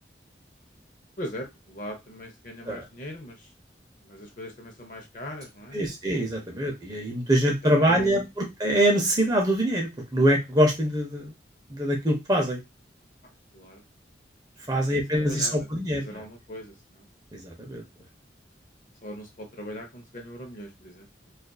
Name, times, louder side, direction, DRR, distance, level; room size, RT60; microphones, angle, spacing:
voice 1, 1.2-3.5 4.0-5.9 7.6-8.3 13.5-13.8 14.7-15.7 15.9-17.1 19.0-21.1, equal, 45° left, 3 dB, 0.7 m, -40 dB
voice 2, 5.7-11.3 11.7-12.6 14.7-16.2 17.3-17.8, right 1 dB, 20° right, 1 dB, 0.6 m, -24 dB
2.6 x 2.4 x 2.2 m, 0.21 s
head